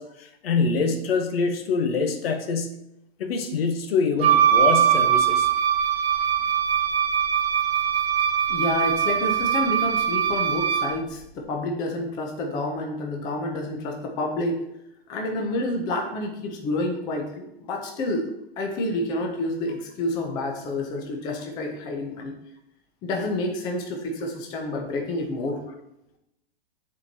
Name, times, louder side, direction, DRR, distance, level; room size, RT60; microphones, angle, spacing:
voice 1, 0.0-2.8 3.2-5.5, left 4 dB, 75° left, 6 dB, 1.0 m, -25 dB
Wind instrument woodwind instrument, 4.2-11.0, right 9 dB, 90° right, 0.9 m, -22 dB
voice 2, 8.5-14.7 15.1-18.3 18.6-22.4 23.0-25.6, left 1 dB, 15° left, 2 dB, 0.5 m, -29 dB
9.9 x 4.4 x 2.7 m, 0.86 s
supercardioid pair, 165°, 30 cm